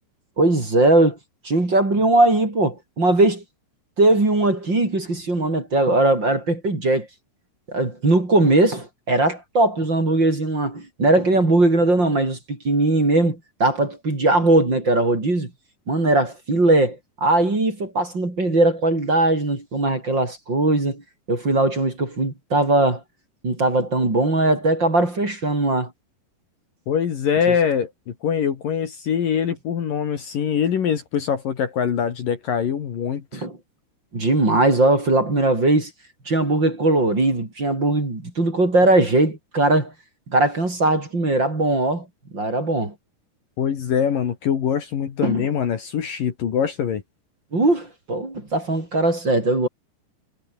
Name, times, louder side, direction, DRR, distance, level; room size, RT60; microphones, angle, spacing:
voice 1, 0.4-1.2 1.4-3.4 4.0-7.1 7.7-15.5 15.9-21.0 21.3-23.0 23.4-25.9 33.3-33.6 34.1-35.9 36.3-39.9 40.3-42.1 42.3-42.9 45.2-45.5 47.5-49.7, right 2 dB, 25° right, 5.6 m, -20 dB
voice 2, 26.9-33.5 43.6-47.0, left 8 dB, 55° left, 3.6 m, -23 dB
omnidirectional pair, 5.0 m